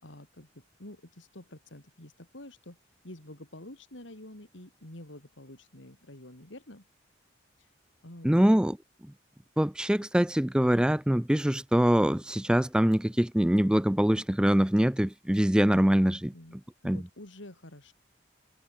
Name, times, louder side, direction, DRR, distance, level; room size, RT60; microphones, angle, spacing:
voice 1, 0.0-2.8 3.0-6.8 8.0-8.6 15.7-16.6 16.8-17.9, left 1 dB, 85° left, 4.1 m, -48 dB
voice 2, 8.2-8.8 9.6-16.3 16.8-17.0, equal, 5° right, 0.4 m, -24 dB
head